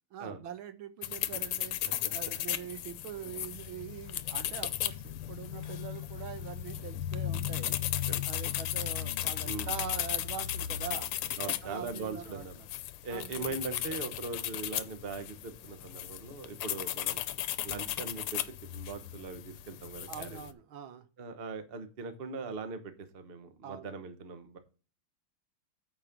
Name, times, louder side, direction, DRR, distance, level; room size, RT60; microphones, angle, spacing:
voice 1, 0.1-1.8 2.0-11.1 11.4-12.7 13.1-13.5 20.1-21.1 23.6-23.9, right 8 dB, 75° right, 10 dB, 1.7 m, -43 dB
sound 1, 1.0-20.5, left 12 dB, 90° left, 1.6 m, -36 dB
voice 2, 1.9-2.4 8.1-8.2 9.4-9.8 11.4-12.5 13.0-17.2 17.6-18.4 18.7-20.5 21.2-24.6, right 4 dB, 40° right, 8 dB, 0.9 m, -40 dB
sound 2, 5.6-6.7, left 5 dB, 25° left, 3.5 m, -65 dB
8.8 x 4.8 x 5.9 m, 0.37 s
omnidirectional pair, 2.3 m